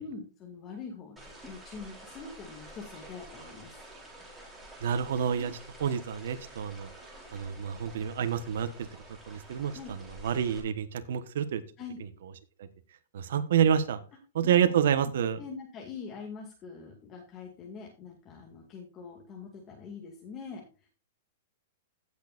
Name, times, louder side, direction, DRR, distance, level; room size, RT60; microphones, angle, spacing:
voice 1, 0.0-3.8 5.3-5.5 9.7-9.9 11.8-12.0 14.4-14.7 15.4-20.9, left 5 dB, 25° left, 0 dB, 2.4 m, -44 dB
sound 1, 1.2-10.6, right 1 dB, 5° right, 4.0 m, -49 dB
voice 2, 4.8-5.5 5.8-6.9 7.3-8.7 9.3-11.6 13.1-14.0 14.3-15.4, right 8 dB, 70° right, 9 dB, 1.2 m, -28 dB
17.0 x 6.5 x 2.5 m, 0.34 s
hypercardioid pair, 150°, 0 cm